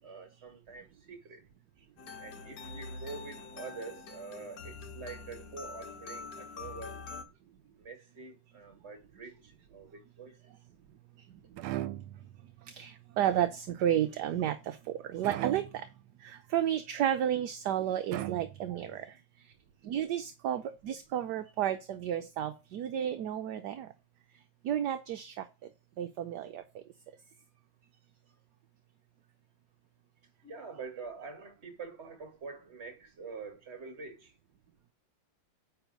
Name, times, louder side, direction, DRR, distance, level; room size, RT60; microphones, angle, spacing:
voice 1, 0.0-1.4 2.2-7.1 7.8-10.3 18.7-18.9 19.9-20.2 30.4-34.3, right 4 dB, 35° right, 1.9 m, -46 dB
sound 1, 2.0-7.2, left 4 dB, 60° left, 1.5 m, -45 dB
sound 2, 11.6-12.4 15.2-16.0 18.1-18.9, right 14 dB, 85° right, 1.4 m, -38 dB
voice 2, 12.6-15.9 16.2-19.5 19.8-23.9 24.6-25.7 26.0-26.8, right 10 dB, 65° right, 1.1 m, -32 dB
9.5 x 3.6 x 5.2 m
omnidirectional pair, 2.2 m